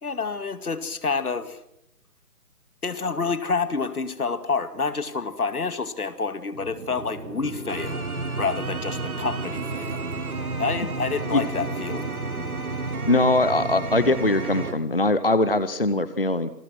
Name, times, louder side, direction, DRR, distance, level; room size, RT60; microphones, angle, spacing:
voice 1, 0.0-1.6 2.8-8.0 8.4-10.0 10.6-12.1, left 4 dB, 65° left, 11 dB, 2.4 m, -28 dB
sound 1, 6.5-14.7, right 3 dB, 65° right, 4.1 m, -31 dB
voice 2, 13.1-16.5, left 2 dB, 35° left, 14 dB, 0.8 m, -21 dB
27.5 x 21.0 x 6.1 m, 0.78 s
hypercardioid pair, 180°, 47 cm